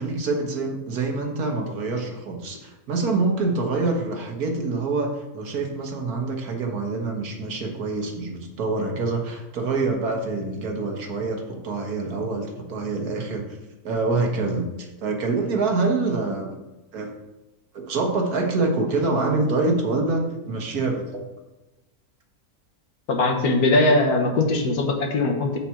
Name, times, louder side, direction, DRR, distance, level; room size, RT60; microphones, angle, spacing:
voice 1, 0.0-13.6 13.8-16.6 16.9-17.2 17.7-21.2, right 3 dB, 80° right, 2 dB, 1.8 m, -26 dB
voice 2, 23.1-25.6, left 2 dB, 80° left, 3 dB, 1.7 m, -20 dB
7.3 x 5.1 x 5.9 m, 1.0 s
omnidirectional pair, 1.6 m